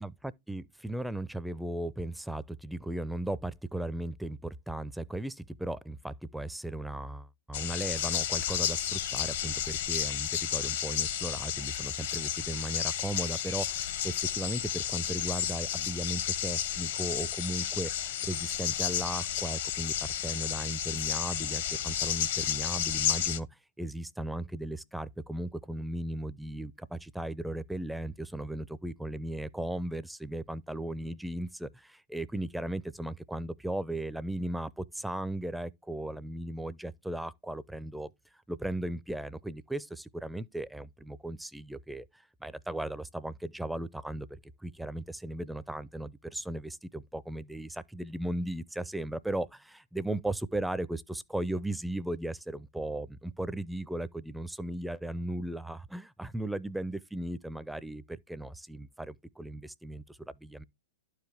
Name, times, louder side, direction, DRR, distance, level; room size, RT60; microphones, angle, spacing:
voice 1, 0.5-19.9 20.2-23.5 23.8-38.1 38.5-44.3 44.6-60.6, right 1 dB, 5° right, 0.4 m, -36 dB
sound 1, 7.5-23.4, left 10 dB, 60° left, 0.9 m, -32 dB
11.5 x 4.8 x 3.4 m
hypercardioid pair, 110°, 0 cm